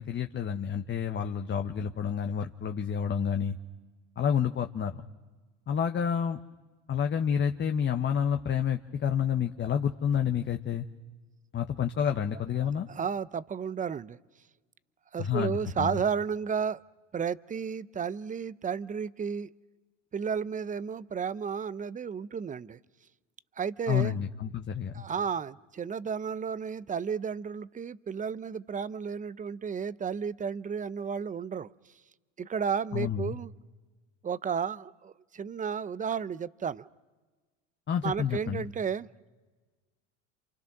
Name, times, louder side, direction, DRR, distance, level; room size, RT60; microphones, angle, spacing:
voice 1, 0.0-3.6 4.2-4.9 5.7-6.4 6.9-10.9 11.5-12.9 15.2-16.0 23.9-25.0 32.9-33.4 37.9-38.7, left 8 dB, 30° left, 5 dB, 1.1 m, -29 dB
voice 2, 12.6-14.2 15.1-16.8 17.1-19.5 20.1-22.8 23.6-24.2 24.9-31.7 32.4-33.5 34.2-36.9 38.0-39.1, right 6 dB, 20° right, 18 dB, 0.7 m, -33 dB
28.5 x 27.5 x 6.1 m, 1.3 s
hypercardioid pair, 85°, 35 cm